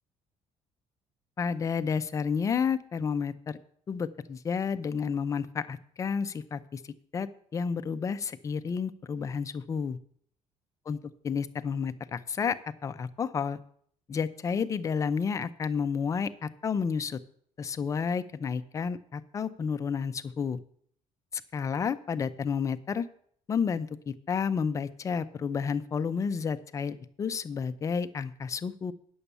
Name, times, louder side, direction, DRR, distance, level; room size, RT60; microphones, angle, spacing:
voice 1, 1.4-3.6 3.9-6.8 7.1-10.0 10.9-11.0 11.2-12.6 12.8-13.6 14.1-17.2 17.6-20.6 21.5-23.1 23.5-28.9, left 6 dB, 25° left, 11 dB, 0.5 m, -31 dB
10.0 x 7.1 x 6.8 m, 0.62 s
cardioid pair, 175°, 13 cm